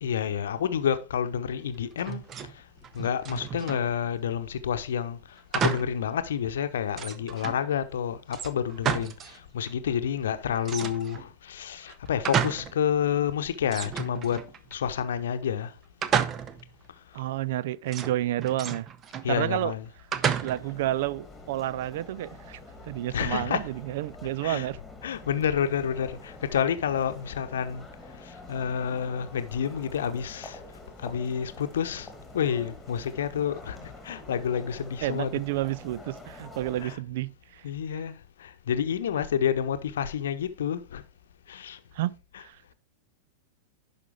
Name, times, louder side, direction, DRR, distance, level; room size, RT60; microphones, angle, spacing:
voice 1, 0.0-2.2 2.9-14.4 14.7-15.7 19.2-19.8 23.1-23.7 24.4-24.7 25.0-27.9 28.2-30.6 31.0-32.1 32.3-35.3 36.8-37.0 37.6-41.0 41.5-41.8 42.3-42.4, left 8 dB, 60° left, 0.8 m, -29 dB
sound 1, 2.0-2.5 2.8-3.9 5.5-6.0 6.4-6.5 6.9-7.6 8.3-9.4 9.6-9.7 10.6-11.3 11.8-12.8 13.1-13.2 13.7-14.7 16.0-16.7 17.9-19.3 20.1-20.8, right 8 dB, 30° right, 0.8 m, -31 dB
voice 2, 17.1-18.9 19.3-19.7 20.4-24.8 35.0-37.6 41.9-42.1 42.4-42.7, right 14 dB, 55° right, 0.4 m, -30 dB
sound 2, 20.5-37.0, left 2 dB, 5° left, 2.3 m, -47 dB
11.0 x 5.4 x 3.4 m
figure-of-eight pair, 90°, 0 cm